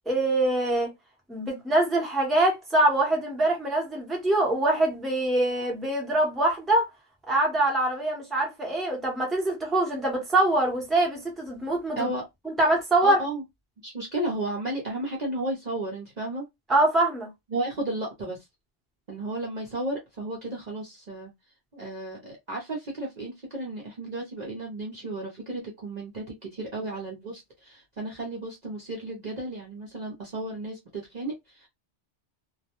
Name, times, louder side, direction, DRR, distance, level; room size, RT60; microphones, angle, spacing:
voice 1, 0.1-0.9 1.3-6.9 7.3-12.1 12.6-13.2 16.7-17.3, right 2 dB, ahead, 0.7 m, -24 dB
voice 2, 13.0-13.4 13.8-16.5 17.5-18.4 19.1-21.3 21.7-31.7, right 2 dB, 45° right, 0.6 m, -33 dB
2.3 x 2.1 x 2.8 m
omnidirectional pair, 1.2 m